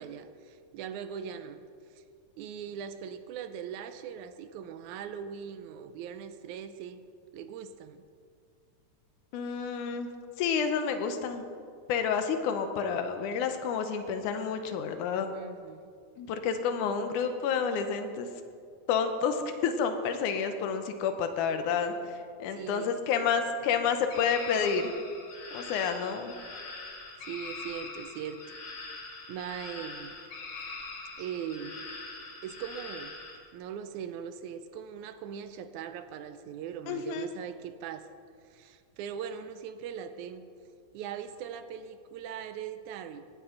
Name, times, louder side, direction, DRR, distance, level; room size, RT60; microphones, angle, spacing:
voice 1, 0.0-1.6 1.9-2.0 2.4-7.0 7.3-8.0 15.3-15.9 22.5-22.9 27.3-28.4 29.3-30.1 31.2-31.9 32.4-33.2 33.5-38.1 38.4-40.4 40.9-43.3, right 8 dB, 80° right, 10 dB, 1.9 m, -40 dB
voice 2, 9.3-10.1 10.4-11.4 11.9-15.3 16.2-18.3 18.9-24.9 25.5-26.4 36.9-37.3, left 6 dB, 80° left, 7 dB, 2.3 m, -29 dB
sound 1, 24.1-33.4, left 3 dB, 50° left, 1.9 m, -43 dB
18.0 x 10.5 x 3.8 m, 2.2 s
omnidirectional pair, 3.7 m